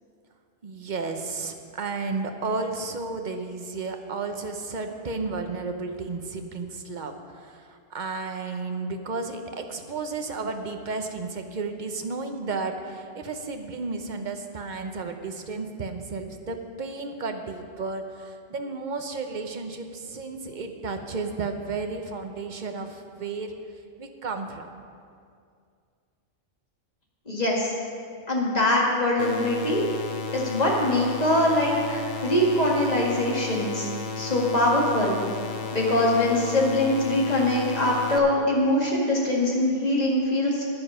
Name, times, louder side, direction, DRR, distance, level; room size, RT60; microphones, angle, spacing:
voice 1, 0.6-23.5 24.0-24.7, right 3 dB, 45° right, 6 dB, 0.8 m, -33 dB
voice 2, 27.3-27.7 28.3-29.8 30.3-33.9 34.2-35.2 35.7-40.6, left 1 dB, 30° left, -3 dB, 1.9 m, -23 dB
sound 1, 29.2-38.2, left 4 dB, 50° left, 0.8 m, -34 dB
10.0 x 10.0 x 5.5 m, 2.3 s
omnidirectional pair, 1.4 m